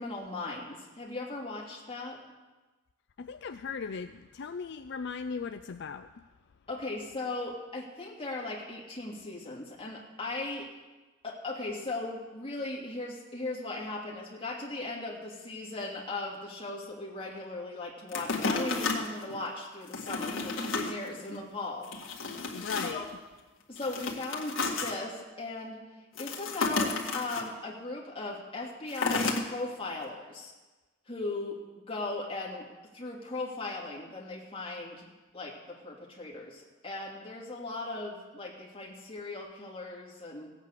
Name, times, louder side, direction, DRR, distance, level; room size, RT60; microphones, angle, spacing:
voice 1, 0.0-2.2 6.7-10.7 11.2-21.9 22.3-22.4 22.9-23.0 23.7-25.8 26.2-30.5 31.1-40.5, left 2 dB, 30° left, -2 dB, 2.7 m, -38 dB
voice 2, 3.2-6.3 22.5-23.1, left 5 dB, 60° left, 9 dB, 0.4 m, -38 dB
sound 1, 18.1-19.4 19.9-20.9 21.3-21.4 21.8-23.1 23.7-24.9 26.1-27.4 28.9-29.4 30.0-30.1, left 3 dB, 85° left, 1.9 m, -32 dB
16.5 x 8.4 x 6.6 m, 1.2 s
head